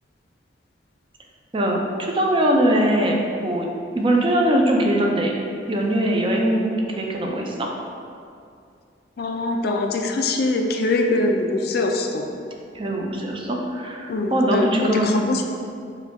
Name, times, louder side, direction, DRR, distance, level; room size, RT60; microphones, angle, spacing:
voice 1, 1.5-3.7 3.9-5.3 5.7-7.7 12.7-15.2, right 1 dB, 30° right, 0 dB, 0.5 m, -21 dB
voice 2, 9.2-12.3 14.1-15.5, left 2 dB, 55° left, 3 dB, 0.4 m, -23 dB
6.5 x 2.3 x 3.4 m, 2.4 s
head